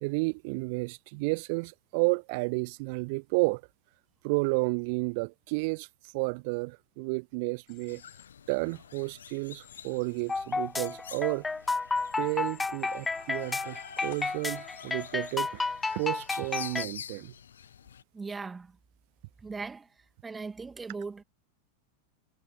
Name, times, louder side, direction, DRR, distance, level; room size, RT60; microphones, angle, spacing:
voice 1, 0.0-3.6 4.2-5.9 6.1-8.0 8.5-11.5 12.2-15.6 15.9-17.3, right 30 dB, 45° right, 0.5 m, -31 dB
Human voice / Train, 7.7-8.3 9.6-10.4 11.9-14.3, left 33 dB, 45° left, 6.7 m, -57 dB
sound 1, 7.9-18.0, left 8 dB, 65° left, 1.4 m, -47 dB
sound 2, 10.3-16.9, left 3 dB, 10° left, 1.4 m, -32 dB
voice 2, 18.1-18.7 19.4-19.9 20.2-21.2, right 4 dB, 15° right, 2.7 m, -38 dB
figure-of-eight pair, 90°, 0 cm